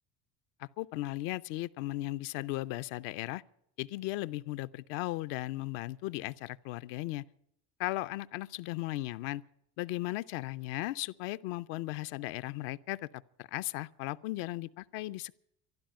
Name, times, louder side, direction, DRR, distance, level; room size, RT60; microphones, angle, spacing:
voice 1, 0.6-3.4 3.8-7.2 7.8-9.4 9.8-15.3, left 17 dB, 70° left, 0.6 m, -36 dB
13.0 x 11.5 x 8.8 m
supercardioid pair, 80°, 45 cm